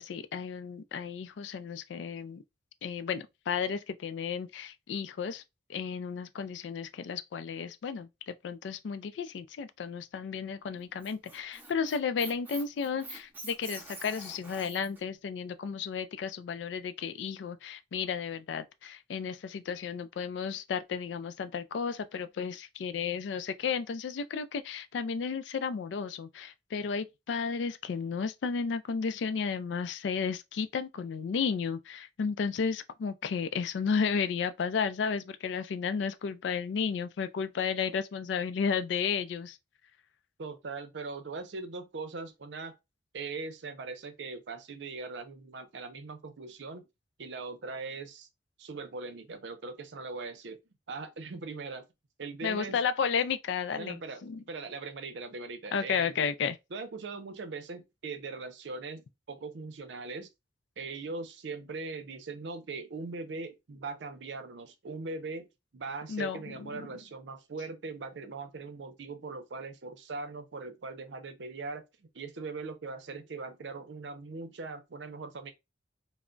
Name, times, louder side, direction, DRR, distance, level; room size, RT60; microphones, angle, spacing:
voice 1, 0.0-2.4 2.8-5.4 5.7-39.6 52.4-54.4 55.7-56.6 66.1-66.9, left 6 dB, 80° left, 0.3 m, -33 dB
Squeak, 10.8-15.0, right 2 dB, 10° right, 0.6 m, -45 dB
voice 2, 40.4-42.8 43.1-46.9 47.2-48.3 48.6-50.6 50.9-51.9 52.2-52.8 53.8-56.3 56.7-60.3 60.8-65.5 65.7-75.5, right 3 dB, 75° right, 0.6 m, -40 dB
2.2 x 2.0 x 3.7 m
head